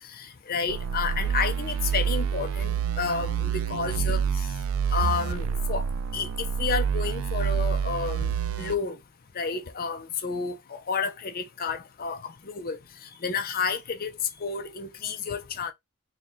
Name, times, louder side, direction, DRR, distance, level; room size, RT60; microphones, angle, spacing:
voice 1, 0.5-4.2 4.9-5.9 6.1-6.3 6.6-8.3 8.6-9.0 9.4-12.8 13.2-14.1 14.4-15.7, left 5 dB, 40° left, 0.6 m, -30 dB
sound 1, 0.7-8.8, right 7 dB, 65° right, 0.3 m, -28 dB
3.7 x 2.3 x 4.3 m
head